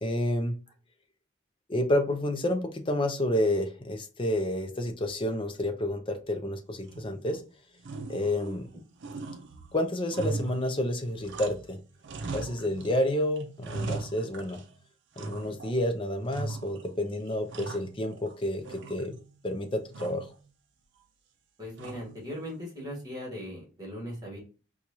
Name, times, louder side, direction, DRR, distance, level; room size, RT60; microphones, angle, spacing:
voice 1, 0.0-0.5 1.7-7.4 8.1-8.7 9.7-11.8 12.3-14.6 15.2-19.1 19.4-20.3, left 1 dB, 25° left, 5 dB, 0.6 m, -29 dB
sound 1, 6.9-7.4 7.8-8.7 9.0-11.7 12.0-13.0 13.4-14.7 15.2-15.8 16.3-16.9 17.3-18.3 18.7-19.4 19.9-20.4 21.8-22.3, right 3 dB, 60° right, 0.5 m, -39 dB
voice 2, 21.6-24.4, equal, 20° right, -3 dB, 1.7 m, -39 dB
4.5 x 2.4 x 2.8 m, 0.35 s
head